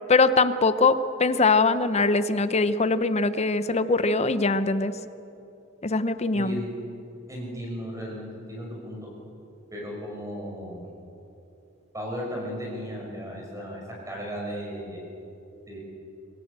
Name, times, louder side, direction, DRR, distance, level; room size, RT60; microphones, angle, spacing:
voice 1, 0.1-4.9 5.8-6.6, left 3 dB, 35° left, 13 dB, 0.8 m, -22 dB
voice 2, 6.3-6.7 7.3-9.0 9.7-10.9 11.9-15.0 15.7-15.8, equal, 15° right, -2 dB, 5.6 m, -35 dB
25.0 x 16.0 x 8.2 m, 2.9 s
head